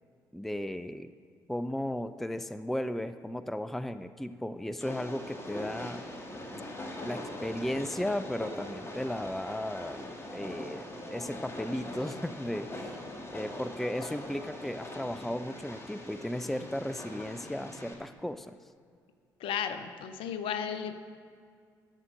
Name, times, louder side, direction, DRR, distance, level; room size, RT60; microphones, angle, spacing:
voice 1, 0.3-1.1 1.5-6.0 7.0-12.9 13.3-18.6, left 1 dB, ahead, 12 dB, 0.4 m, -35 dB
Train, 4.8-17.9, left 1 dB, 25° left, 1.9 m, -42 dB
voice 2, 19.4-20.9, left 8 dB, 60° left, 10 dB, 0.7 m, -34 dB
11.5 x 7.4 x 6.5 m, 2.2 s
figure-of-eight pair, 45°, 10 cm